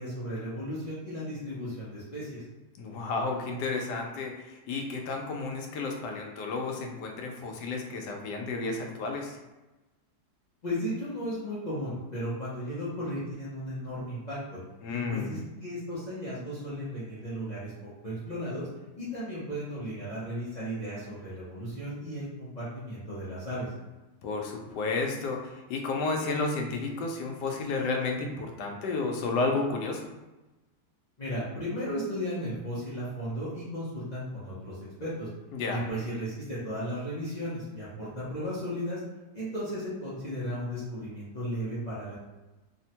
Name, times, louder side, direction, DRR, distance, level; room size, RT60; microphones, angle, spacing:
voice 1, 0.0-2.4 10.6-14.6 14.9-18.7 19.0-23.7 31.2-35.3 35.7-39.0 39.3-42.1, equal, 65° left, -10 dB, 0.4 m, -35 dB
voice 2, 2.8-9.4 14.8-15.4 24.2-30.1 35.5-35.8, left 3 dB, 80° left, 2 dB, 1.2 m, -32 dB
3.3 x 2.1 x 2.8 m, 1.1 s
omnidirectional pair, 1.8 m